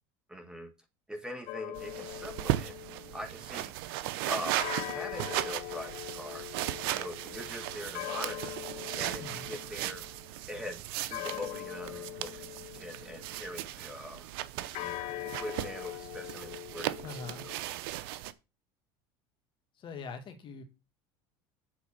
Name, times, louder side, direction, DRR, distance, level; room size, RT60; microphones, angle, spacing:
voice 1, 0.3-0.7 1.1-2.7 3.1-3.7 4.3-6.4 6.8-8.6 9.0-10.0 10.5-10.8 11.1-12.5 12.7-14.3 14.6-17.1 17.4-17.5, left 1 dB, 5° right, 1.3 m, -42 dB
sound 1, 1.5-3.6 4.6-10.3 11.1-13.5 14.7-17.6, left 19 dB, 60° left, 0.6 m, -42 dB
sound 2, 1.7-18.3, right 14 dB, 80° right, 0.6 m, -37 dB
voice 2, 9.2-9.5 17.0-17.5 19.8-20.6, left 4 dB, 45° left, 2.0 m, -43 dB
8.0 x 4.1 x 6.4 m
supercardioid pair, 100°, 12 cm